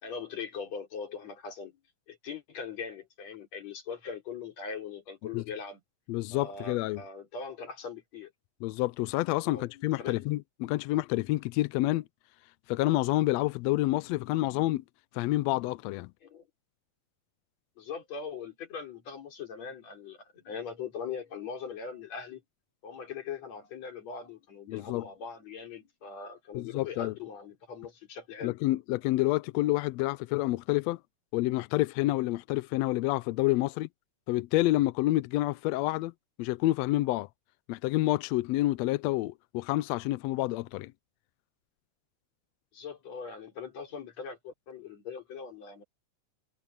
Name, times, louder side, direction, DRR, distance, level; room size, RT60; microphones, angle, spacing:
voice 1, 0.0-1.8 2.1-5.8 6.3-8.3 9.4-10.3 16.2-16.5 17.8-22.4 22.8-28.6 42.7-45.8, left 6 dB, 60° left, 4.8 m, -41 dB
voice 2, 6.1-7.0 8.6-12.0 12.7-14.8 15.1-16.1 24.7-25.0 26.5-27.1 28.4-31.0 31.3-33.9 34.3-36.1 36.4-37.3 37.7-40.9, left 17 dB, 80° left, 1.6 m, -28 dB
omnidirectional pair, 3.4 m